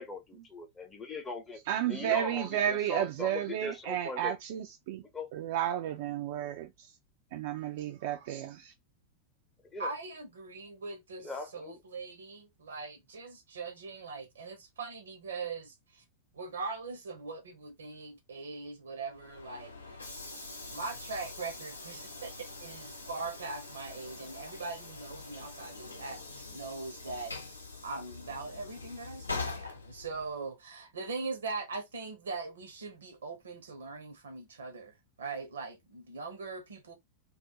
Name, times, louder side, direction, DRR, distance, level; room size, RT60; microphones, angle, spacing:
voice 1, 0.0-1.6 1.9-4.3 5.1-5.3 9.7-9.9 11.2-11.8, left 3 dB, 20° left, 0.7 m, -40 dB
voice 2, 1.7-5.0 5.3-6.7 7.3-8.7, right 11 dB, 50° right, 0.4 m, -32 dB
voice 3, 9.8-16.0 16.3-20.1 20.7-27.3 27.8-36.9, right 4 dB, 70° right, 0.8 m, -41 dB
Train / Sliding door, 19.1-30.5, left 3 dB, 80° left, 0.7 m, -44 dB
2.3 x 2.1 x 2.8 m
figure-of-eight pair, 90°, 0 cm